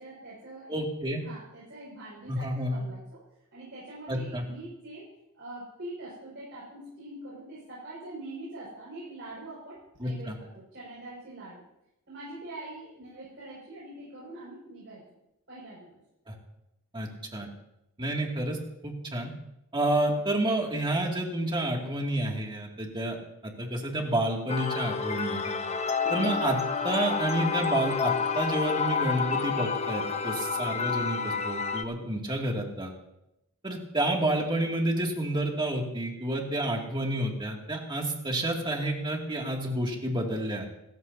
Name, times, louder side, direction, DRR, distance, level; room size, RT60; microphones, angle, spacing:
voice 1, 0.0-0.8 1.2-3.2 3.5-5.1 5.3-11.6 12.1-15.0 15.5-16.0 25.6-25.8, right 2 dB, 60° right, -7 dB, 6.2 m, -44 dB
voice 2, 0.7-1.2 2.3-2.8 4.1-4.4 10.0-10.3 16.3-16.4 16.9-17.5 18.0-18.6 18.8-19.3 19.7-23.2 23.4-25.5 26.1-26.6 26.8-32.9 33.6-40.7, right 1 dB, 20° right, 0 dB, 2.5 m, -29 dB
sound 1, 24.5-31.8, left 5 dB, 30° left, 0.9 m, -29 dB
27.5 x 14.5 x 2.9 m, 0.86 s
head